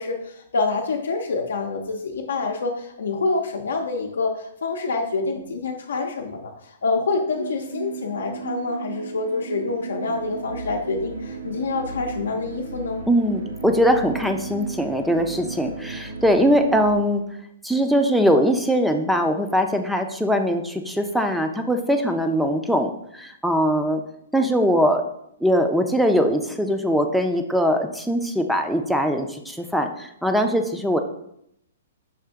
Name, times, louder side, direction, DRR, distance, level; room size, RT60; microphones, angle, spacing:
voice 1, 0.0-13.0, left 3 dB, 85° left, 1 dB, 0.5 m, -27 dB
sound 1, 7.3-16.9, right 5 dB, 85° right, 0.7 m, -35 dB
voice 2, 13.1-17.2 17.6-24.0 24.3-25.0 25.4-31.0, equal, ahead, 5 dB, 0.4 m, -21 dB
5.6 x 2.5 x 3.6 m, 0.75 s
hypercardioid pair, 150°, 0 cm